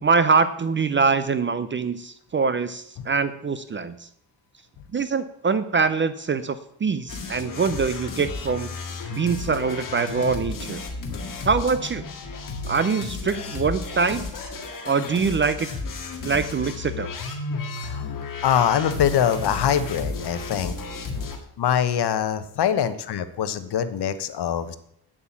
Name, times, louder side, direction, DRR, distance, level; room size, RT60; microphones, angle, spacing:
voice 1, 0.0-4.1 4.9-8.7 9.1-10.8 11.4-12.0 12.7-14.3 14.8-15.7 16.2-17.1, right 5 dB, 30° right, 13 dB, 0.5 m, -24 dB
sound 1, 7.1-21.4, left 3 dB, 50° left, 2.0 m, -33 dB
voice 2, 17.8-18.1 18.4-20.8 21.6-24.8, left 9 dB, 65° left, 11 dB, 1.0 m, -23 dB
9.0 x 8.4 x 7.2 m, 0.71 s
wide cardioid pair, 155°, 42 cm